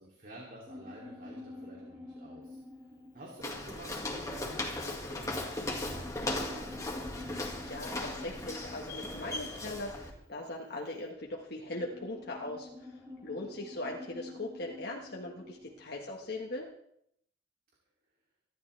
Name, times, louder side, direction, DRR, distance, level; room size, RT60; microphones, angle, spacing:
voice 1, 0.0-2.6 3.1-7.2, right 1 dB, 45° right, -2 dB, 3.0 m, -50 dB
sound 1, 0.7-16.6, left 2 dB, 15° right, 2.5 m, -49 dB
Walk footsteps, 3.4-10.1, left 2 dB, 15° left, 2.1 m, -37 dB
voice 2, 7.6-16.7, left 2 dB, 55° left, -1 dB, 1.6 m, -40 dB
25.0 x 12.0 x 3.4 m, 0.74 s
head